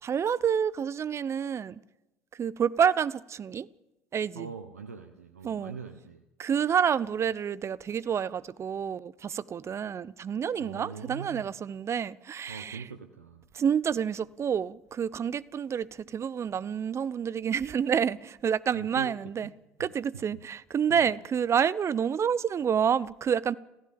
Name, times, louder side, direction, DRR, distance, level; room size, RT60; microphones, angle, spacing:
voice 1, 0.0-1.8 2.4-3.7 4.1-4.5 5.4-5.8 6.4-12.8 13.5-19.5 19.8-23.6, right 8 dB, 35° right, 0.9 m, -28 dB
voice 2, 4.3-6.2 10.6-11.5 12.5-13.5 18.7-19.1 19.8-19.9 20.1-20.4 20.9-21.1, right 5 dB, 90° right, 1.2 m, -42 dB
26.0 x 16.0 x 7.7 m
hypercardioid pair, 65°, 8 cm